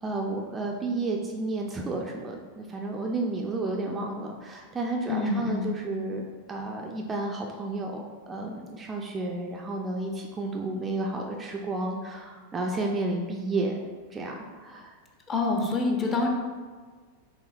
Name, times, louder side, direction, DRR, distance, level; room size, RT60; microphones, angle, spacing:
voice 1, 0.0-13.7 14.1-14.9, right 2 dB, 20° right, 0 dB, 0.3 m, -32 dB
voice 2, 5.1-5.7 15.3-16.3, left 3 dB, 25° left, 1 dB, 0.6 m, -26 dB
4.4 x 3.3 x 2.2 m, 1.5 s
figure-of-eight pair, 90°, 0 cm